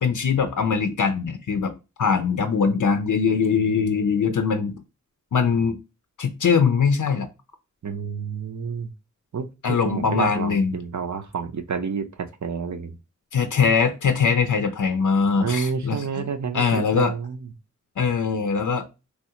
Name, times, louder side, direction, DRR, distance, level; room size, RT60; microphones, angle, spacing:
voice 1, 0.0-4.7 5.3-5.8 6.2-7.3 9.6-10.8 13.3-16.3 16.5-17.1 18.0-18.9, left 5 dB, 85° left, 0.5 m, -22 dB
voice 2, 7.8-8.9 9.3-12.1 12.4-13.0 15.4-17.4, right 6 dB, 70° right, 0.6 m, -29 dB
3.2 x 2.4 x 2.8 m
wide cardioid pair, 60°, 30 cm